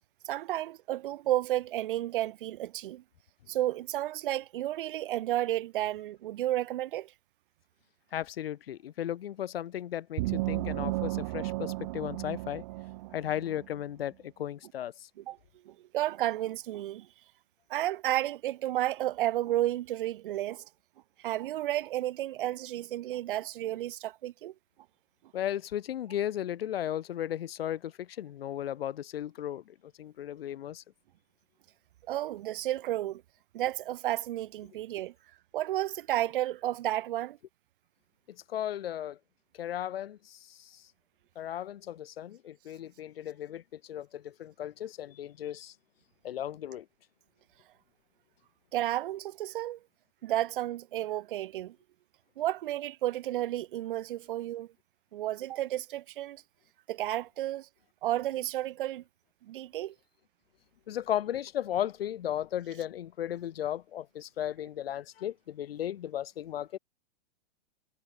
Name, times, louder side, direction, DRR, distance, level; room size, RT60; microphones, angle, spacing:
voice 1, 0.2-3.0 3.5-7.1 15.2-15.4 15.6-17.1 17.7-20.6 21.2-24.5 32.1-33.2 33.5-35.1 35.5-37.4 48.7-49.8 50.2-51.7 52.4-54.7 55.1-56.4 56.9-57.7 58.0-59.0 59.5-59.9, right 14 dB, 60° right, 1.4 m, -32 dB
voice 2, 8.1-12.6 13.1-14.9 25.3-30.8 38.5-39.2 39.6-40.8 41.4-45.7 46.2-46.8 60.9-66.8, left 11 dB, 75° left, 2.4 m, -35 dB
sound 1, 10.2-13.7, right 20 dB, 35° right, 0.5 m, -34 dB
hypercardioid pair, 150°, 30 cm